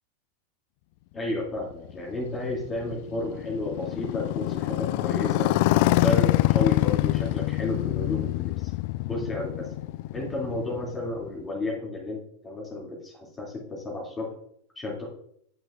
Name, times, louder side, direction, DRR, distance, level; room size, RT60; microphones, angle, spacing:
voice 1, 1.1-5.5 6.0-8.7 9.1-9.7 10.1-14.3 14.8-15.1, left 2 dB, 15° left, -3 dB, 2.6 m, -32 dB
Motorcycle, 1.6-11.5, left 17 dB, 45° left, 0.3 m, -26 dB
9.6 x 9.1 x 2.5 m, 0.70 s
figure-of-eight pair, 90°, 0 cm